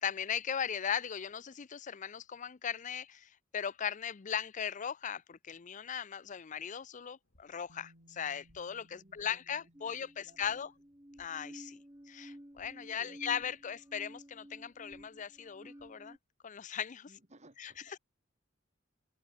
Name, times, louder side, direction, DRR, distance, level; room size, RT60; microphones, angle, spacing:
voice 1, 0.0-10.7 11.2-11.8 12.1-16.2 16.4-17.1 17.6-17.7, left 8 dB, 40° left, 0.5 m, -38 dB
sound 1, 7.2-16.1, equal, 65° left, 7.0 m, -73 dB
Bass guitar, 7.7-11.6 12.8-12.9, equal, 80° right, 6.5 m, -66 dB
voice 2, 8.9-10.6 13.0-13.4 17.1-18.0, right 1 dB, 35° right, 3.6 m, -61 dB
sound 2, 9.7-16.2, equal, 15° right, 2.8 m, -53 dB
open air
head